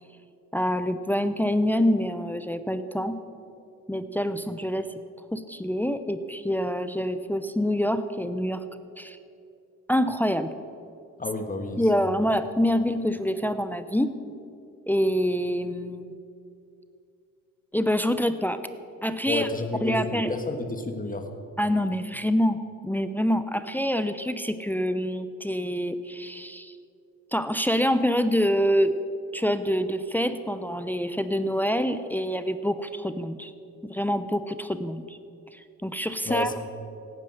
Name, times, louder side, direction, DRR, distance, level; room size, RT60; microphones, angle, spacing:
voice 1, 0.5-3.2 3.9-4.9 5.3-8.6 9.0-9.2 9.9-10.5 11.8-14.1 14.9-16.2 17.7-18.6 19.0-19.5 19.8-20.3 21.6-26.7 27.3-29.0 29.3-33.5 33.8-35.2 35.5-36.5, equal, 5° left, 11 dB, 0.6 m, -26 dB
voice 2, 11.2-11.9 19.3-21.3 36.2-36.6, left 2 dB, 25° left, 6 dB, 1.5 m, -30 dB
17.5 x 9.5 x 6.5 m, 2.6 s
cardioid pair, 90°, 30 cm